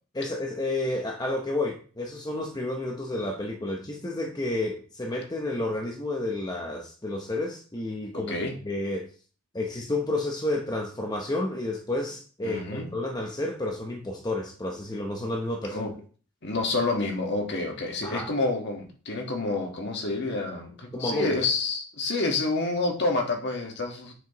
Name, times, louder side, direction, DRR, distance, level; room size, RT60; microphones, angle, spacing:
voice 1, 0.1-8.4 8.6-9.1 9.5-15.9 18.0-18.3 20.9-21.4, left 2 dB, 20° left, 1 dB, 0.8 m, -30 dB
voice 2, 8.1-8.6 12.4-12.9 15.7-15.9 16.4-24.1, left 3 dB, 50° left, 1 dB, 1.6 m, -28 dB
7.6 x 6.1 x 3.0 m, 0.40 s
head